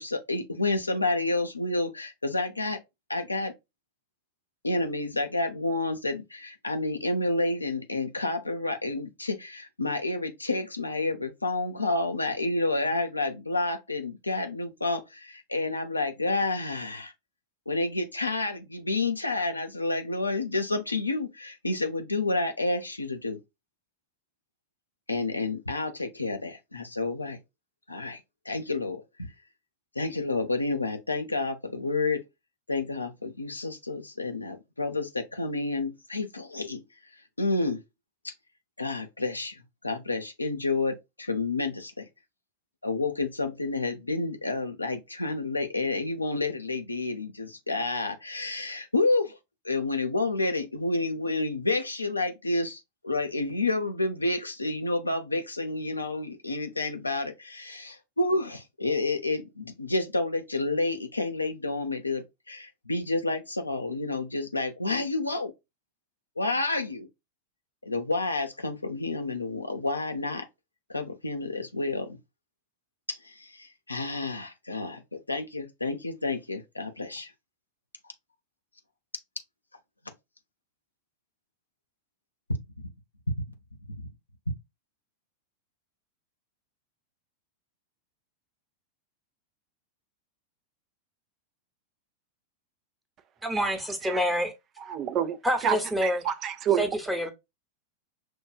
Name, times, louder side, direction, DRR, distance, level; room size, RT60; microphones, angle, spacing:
voice 1, 0.0-2.8 3.1-3.5 4.6-17.1 17.7-23.4 25.1-27.4 27.9-28.2 28.5-29.0 30.0-32.2 32.7-36.8 37.4-37.8 38.2-38.3 38.8-42.1 42.8-49.4 49.6-65.5 66.4-67.1 67.8-70.5 70.9-72.2 73.1-77.3 83.9-84.0, left 2 dB, 80° left, 0.6 m, -29 dB
voice 2, 93.4-94.5 95.4-96.2 96.8-97.3, equal, 5° right, 0.9 m, -27 dB
voice 3, 94.9-95.8 96.0-96.9, right 9 dB, 35° right, 0.4 m, -28 dB
6.1 x 2.3 x 2.4 m
figure-of-eight pair, 90°, 0 cm